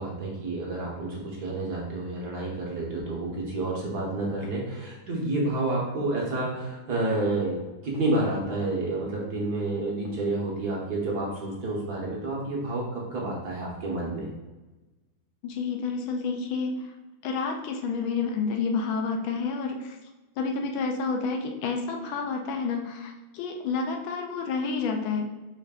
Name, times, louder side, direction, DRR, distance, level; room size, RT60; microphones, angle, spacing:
voice 1, 0.0-14.3, right 2 dB, 55° right, -3 dB, 1.3 m, -29 dB
voice 2, 15.4-16.8 17.2-20.0 20.4-25.3, left 4 dB, 75° left, 3 dB, 1.3 m, -29 dB
5.3 x 2.5 x 3.6 m, 1.2 s
omnidirectional pair, 2.3 m